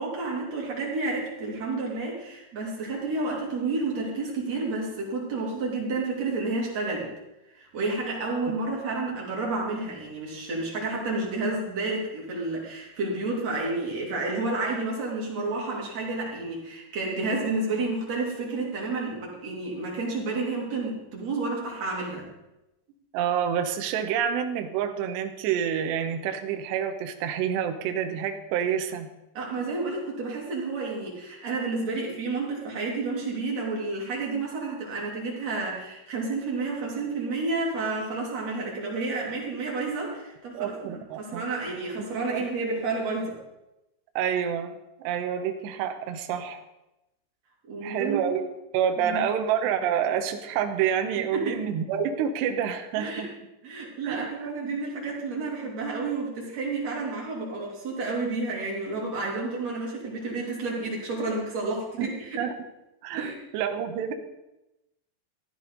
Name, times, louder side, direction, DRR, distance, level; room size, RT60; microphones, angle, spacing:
voice 1, 0.0-7.1 7.6-22.3 29.3-43.4 47.7-48.3 49.0-49.2 51.3-51.6 53.0-53.3 53.6-62.4 63.2-63.3, right 3 dB, 40° right, -3 dB, 3.7 m, -30 dB
voice 2, 23.1-29.1 40.5-41.4 42.3-42.5 44.2-44.7 45.0-46.6 47.8-53.3 54.0-54.5 62.0-62.1 62.4-62.5 63.0-64.1, right 8 dB, 75° right, 6 dB, 2.8 m, -28 dB
14.5 x 14.0 x 4.0 m, 0.94 s
omnidirectional pair, 5.7 m